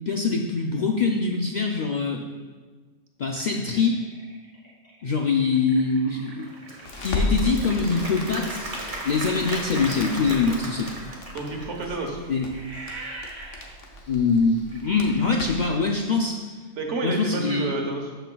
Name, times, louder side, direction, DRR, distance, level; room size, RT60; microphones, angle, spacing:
voice 1, 0.1-2.2 3.2-4.0 5.0-6.5 7.0-8.8 9.0-10.9 12.3-12.5 14.1-16.4 17.0-17.7, left 4 dB, 55° left, 0 dB, 0.5 m, -23 dB
sound 1, 3.4-7.4 10.3-16.4, right 2 dB, 25° left, 2.2 m, -43 dB
Applause / Crowd, 6.4-11.8, right 1 dB, 30° right, 1.0 m, -36 dB
Crackle, 6.8-15.8, left 1 dB, 80° left, 1.3 m, -35 dB
voice 2, 11.3-12.2 16.7-18.1, right 3 dB, 70° right, 2 dB, 1.4 m, -29 dB
13.0 x 5.7 x 2.3 m, 1.4 s
omnidirectional pair, 1.3 m